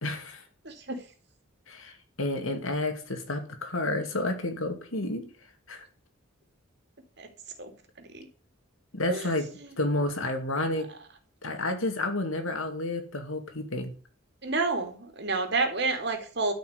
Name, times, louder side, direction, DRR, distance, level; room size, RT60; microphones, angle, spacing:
voice 1, 0.0-0.4 1.7-5.2 5.7-5.8 8.9-9.5 9.8-10.9 11.4-13.9, left 2 dB, 80° left, 6 dB, 2.5 m, -30 dB
voice 2, 0.6-1.0 7.2-7.3 7.6-7.7 8.1-8.3 9.1-9.3 9.6-9.7 14.4-16.5, right 3 dB, 55° right, 5 dB, 2.8 m, -29 dB
12.5 x 5.8 x 8.3 m, 0.41 s
head